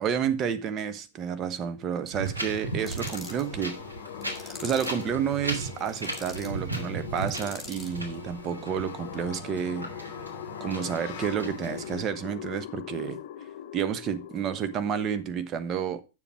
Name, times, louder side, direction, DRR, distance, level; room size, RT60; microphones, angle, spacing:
voice 1, 0.0-3.8 4.4-9.9 10.6-13.2 13.7-16.0, right 8 dB, 30° right, 1.2 m, -30 dB
sound 1, 2.1-15.2, left 11 dB, 50° left, 0.8 m, -42 dB
Wind, 2.1-12.0, right 2 dB, 90° right, 3.1 m, -37 dB
sound 2, 2.8-3.5 4.2-5.1 5.7-6.5 7.2-8.0, left 2 dB, ahead, 2.9 m, -43 dB
9.1 x 7.1 x 4.6 m
figure-of-eight pair, 100°, 0 cm